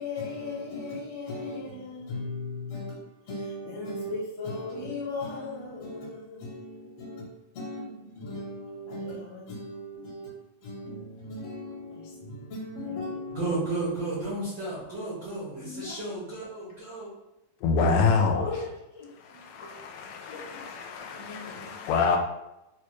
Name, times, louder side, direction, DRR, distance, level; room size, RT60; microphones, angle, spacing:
voice 1, 0.0-10.4 10.6-14.0 15.5-16.0 17.8-19.8 20.3-20.6 21.0-21.8, left 2 dB, 65° left, 1.7 m, -38 dB
voice 2, 13.3-17.1, right 2 dB, 90° right, 1.0 m, -33 dB
voice 3, 17.6-18.5 19.2-22.2, left 4 dB, 80° left, 1.9 m, -27 dB
4.6 x 2.2 x 3.0 m
omnidirectional pair, 3.4 m